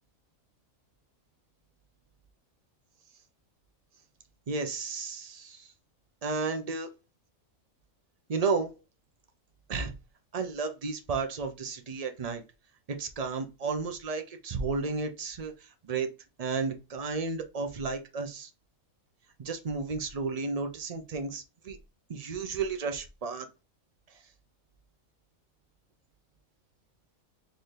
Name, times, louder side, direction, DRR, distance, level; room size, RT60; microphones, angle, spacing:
voice 1, 4.5-5.7 6.2-6.9 8.3-8.7 9.7-9.9 10.3-12.4 13.0-15.5 15.8-16.1 16.4-18.5 19.4-21.8 22.1-23.5, right 4 dB, 65° right, 6 dB, 0.3 m, -32 dB
4.0 x 2.7 x 3.1 m, 0.29 s
omnidirectional pair, 1.4 m